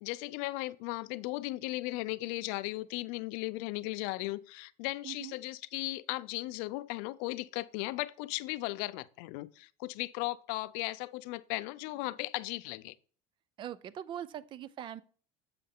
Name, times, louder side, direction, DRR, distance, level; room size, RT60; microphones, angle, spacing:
voice 1, 0.0-12.9, left 20 dB, 75° left, 0.4 m, -36 dB
voice 2, 5.0-5.4 13.6-15.0, right 10 dB, 35° right, 0.4 m, -42 dB
7.7 x 5.4 x 3.6 m
cardioid pair, 135°, 13 cm